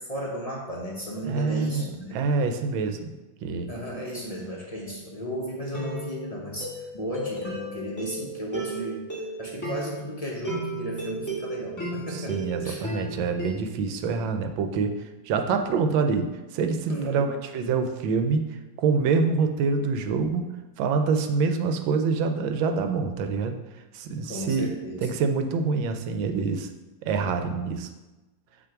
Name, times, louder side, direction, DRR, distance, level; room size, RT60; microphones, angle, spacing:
voice 1, 0.0-2.2 3.7-9.1 9.4-12.8 16.9-17.3 24.2-25.0, equal, 50° left, -3 dB, 0.4 m, -34 dB
voice 2, 1.2-3.1 3.4-3.7 12.1-14.9 15.3-18.4 18.8-20.5 20.8-23.6 23.9-26.7 27.0-27.9, right 4 dB, 80° right, 7 dB, 1.4 m, -26 dB
sound 1, 4.8-5.1 5.7-13.7, right 1 dB, 10° left, 1.4 m, -35 dB
6.1 x 3.2 x 5.8 m, 1.1 s
omnidirectional pair, 2.1 m